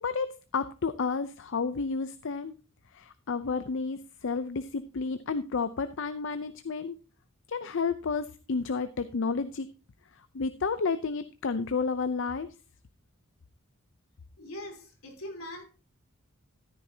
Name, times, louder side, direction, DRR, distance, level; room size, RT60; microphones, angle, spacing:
voice 1, 0.0-2.6 2.9-7.0 7.5-9.7 10.3-12.5, left 4 dB, 60° left, 0.6 m, -31 dB
voice 2, 14.4-15.6, left 1 dB, 80° left, 3.5 m, -41 dB
14.0 x 9.3 x 2.8 m
head